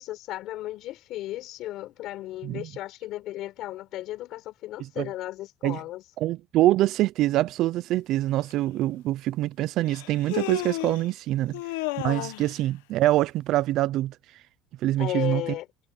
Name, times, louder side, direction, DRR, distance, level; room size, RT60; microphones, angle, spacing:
voice 1, 0.0-6.0 15.0-15.7, left 15 dB, 65° left, 4.7 m, -35 dB
voice 2, 6.2-11.6 12.0-14.2 14.8-15.4, right 15 dB, 60° right, 0.6 m, -25 dB
Human voice, 8.5-8.6 9.9-11.1 11.5-12.5, left 20 dB, 85° left, 1.0 m, -32 dB
supercardioid pair, 100°, 0 cm